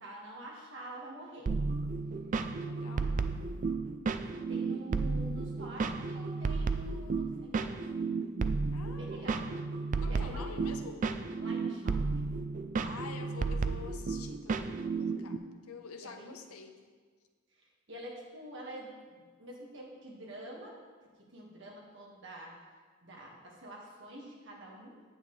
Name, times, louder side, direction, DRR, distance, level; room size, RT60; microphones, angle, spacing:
voice 1, 0.0-1.5 2.8-3.7 4.5-7.8 8.4-8.6 9.0-9.4 10.1-10.7 11.4-12.0 16.0-16.4 17.5-20.8 21.2-22.6 23.0-25.0, right 1 dB, 55° right, -2 dB, 1.7 m, -47 dB
sound 1, 1.5-15.4, right 4 dB, 35° right, 0.3 m, -33 dB
voice 2, 2.6-3.1 8.7-9.5 10.0-11.0 12.8-15.4 15.7-16.7, left 5 dB, 90° left, 6 dB, 0.8 m, -47 dB
9.4 x 8.5 x 3.2 m, 1.5 s
head